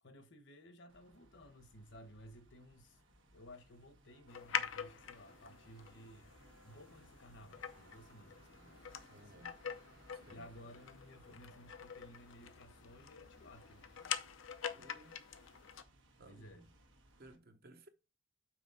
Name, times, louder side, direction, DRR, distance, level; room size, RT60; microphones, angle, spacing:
voice 1, 0.0-3.0 3.3-6.3 6.6-9.6 10.3-14.2 16.2-16.7, equal, 65° left, 1.1 m, -57 dB
sound 1, 0.9-17.4, right 1 dB, 70° right, 1.5 m, -64 dB
sound 2, 4.3-15.8, left 8 dB, 80° left, 0.6 m, -45 dB
voice 2, 9.1-9.6 10.1-10.5 14.7-15.2 16.2-16.7 17.2-17.9, right 1 dB, 50° right, 0.9 m, -59 dB
6.1 x 4.3 x 5.6 m
head